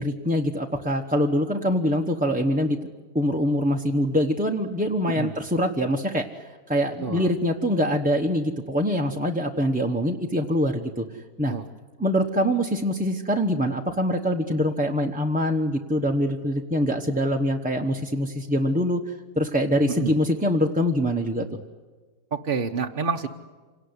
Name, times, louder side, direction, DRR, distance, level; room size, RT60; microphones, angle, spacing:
voice 1, 0.0-2.8 3.1-6.3 6.7-11.0 11.4-11.5 12.0-21.5, equal, 5° right, 1 dB, 0.9 m, -24 dB
voice 2, 22.3-23.3, right 5 dB, 40° right, 3 dB, 0.9 m, -28 dB
27.0 x 18.5 x 9.8 m, 1.4 s
omnidirectional pair, 1.7 m